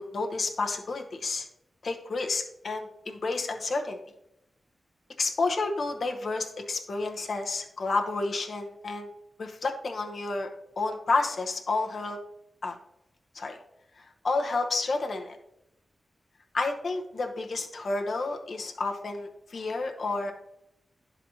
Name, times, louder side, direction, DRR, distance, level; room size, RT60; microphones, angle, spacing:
voice 1, 0.0-1.5 1.8-4.0 5.2-9.1 9.4-10.5 10.8-12.2 12.6-12.7 13.3-13.6 14.2-15.4 16.5-20.3, left 3 dB, 65° left, 3 dB, 0.8 m, -30 dB
11.0 x 4.1 x 2.8 m, 0.82 s
wide cardioid pair, 90°, 0 cm